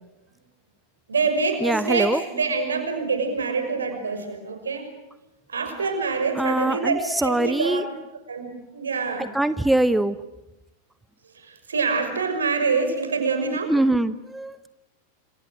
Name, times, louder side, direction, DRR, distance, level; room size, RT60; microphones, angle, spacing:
voice 1, 1.1-4.9 5.5-7.8 8.3-9.3 11.3-13.7, right 4 dB, 70° right, 7 dB, 6.0 m, -26 dB
voice 2, 1.6-2.2 6.4-7.8 9.2-10.2 13.7-14.7, right 1 dB, 5° right, 14 dB, 0.8 m, -23 dB
28.5 x 27.0 x 6.6 m, 0.96 s
figure-of-eight pair, 90°, 0 cm